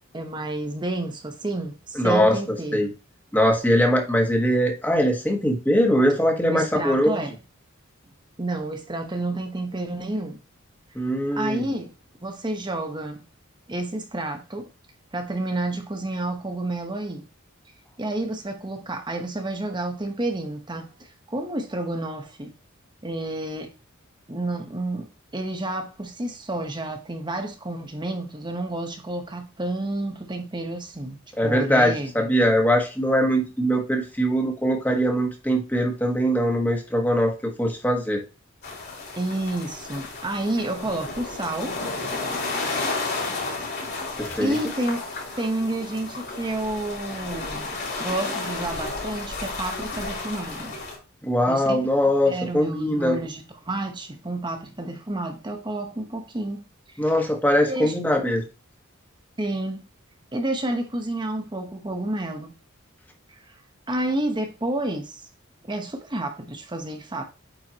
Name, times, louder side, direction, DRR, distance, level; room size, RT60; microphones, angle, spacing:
voice 1, 0.1-2.9 6.5-7.3 8.4-10.4 11.4-11.9 12.2-13.2 13.7-14.7 15.1-17.3 18.0-22.5 23.0-23.7 24.3-32.1 39.2-41.8 44.4-45.1 45.4-47.7 48.0-50.8 51.5-51.8 52.2-57.0 57.7-57.9 59.4-59.8 60.3-62.5 63.3-63.5 63.9-65.2 65.7-67.2, right 2 dB, 20° right, 1.0 m, -30 dB
voice 2, 1.9-2.4 2.7-2.9 3.3-7.2 10.9-11.6 31.4-38.2 44.2-44.5 51.2-53.2 57.0-58.4, equal, 10° left, 1.4 m, -21 dB
sound 1, 38.6-51.0, left 3 dB, 50° left, 3.4 m, -32 dB
8.9 x 4.6 x 2.9 m
head